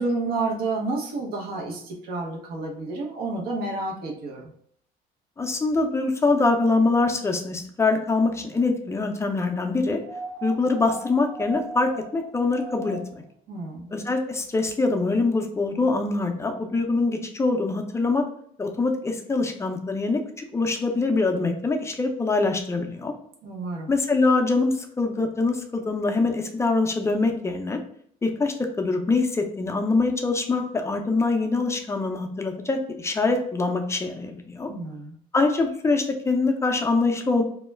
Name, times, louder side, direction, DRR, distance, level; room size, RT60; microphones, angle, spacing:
voice 1, 0.0-4.5 13.5-13.9 23.4-23.9 34.7-35.1, right 3 dB, 65° right, -1 dB, 0.7 m, -30 dB
voice 2, 5.4-10.0 10.4-13.2 13.9-18.2 18.6-23.1 23.9-27.8 28.2-34.7 35.3-37.4, left 3 dB, 15° left, 4 dB, 0.4 m, -24 dB
sound 1, 10.0-13.3 14.7-14.8, right 2 dB, 85° right, 0.9 m, -38 dB
2.2 x 2.0 x 3.2 m, 0.64 s
cardioid pair, 110°, 17 cm